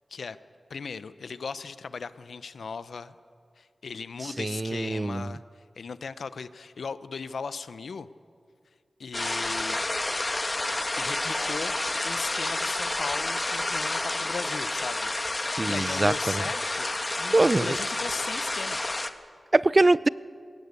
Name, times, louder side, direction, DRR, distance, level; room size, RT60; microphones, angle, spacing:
voice 1, 0.7-3.1 3.6-8.1 9.0-9.8 11.0-11.7 12.0-15.1 15.7-16.9 17.2-18.8, left 5 dB, 85° left, 14 dB, 0.7 m, -37 dB
voice 2, 4.4-5.2 15.6-16.1 17.3-17.8 19.5-20.1, right 2 dB, 40° right, 20 dB, 0.5 m, -22 dB
sound 1, 9.1-19.1, left 2 dB, 35° left, 1.4 m, -30 dB
21.0 x 17.5 x 8.3 m, 2.2 s
cardioid pair, 45°, 0 cm